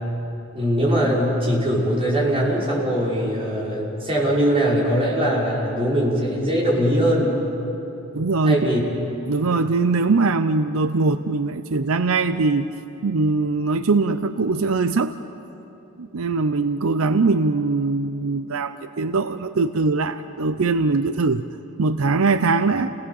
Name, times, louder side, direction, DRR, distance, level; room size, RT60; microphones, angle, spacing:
voice 1, 0.5-7.3 8.4-8.8, equal, 25° right, -6 dB, 5.8 m, -21 dB
voice 2, 8.1-8.7 9.3-12.7 13.0-15.1 16.0-21.5 21.8-22.9, right 3 dB, 80° right, 11 dB, 0.6 m, -21 dB
30.0 x 18.5 x 7.1 m, 2.9 s
head